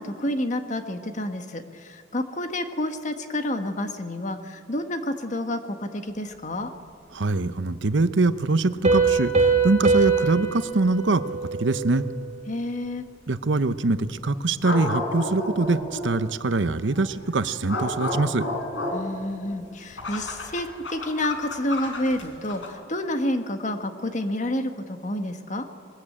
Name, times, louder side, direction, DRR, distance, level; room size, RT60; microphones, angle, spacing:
voice 1, 0.0-6.7 12.5-13.0 18.9-25.6, left 1 dB, 40° left, 7 dB, 1.5 m, -29 dB
voice 2, 7.1-12.1 13.3-18.5, right 3 dB, 75° right, 12 dB, 0.8 m, -24 dB
Piano, 8.8-12.3, right 4 dB, 35° right, 2.1 m, -23 dB
sound 1, 9.7-9.8 10.8-10.9 14.6-16.2 16.9-22.7, left 2 dB, 85° left, 4.4 m, -32 dB
21.5 x 20.5 x 8.8 m, 2.3 s
head